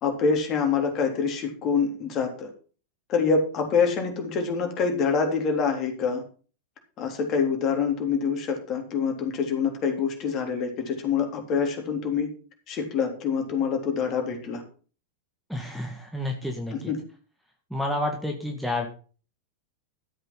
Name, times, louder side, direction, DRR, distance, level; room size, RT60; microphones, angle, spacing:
voice 1, 0.0-2.5 3.1-6.2 7.0-12.3 12.7-14.6 16.7-17.0, left 5 dB, 35° left, 3 dB, 3.6 m, -26 dB
voice 2, 15.5-16.9 17.7-18.9, left 1 dB, ahead, 2 dB, 2.0 m, -30 dB
13.0 x 8.0 x 5.7 m, 0.39 s
figure-of-eight pair, 90°, 0 cm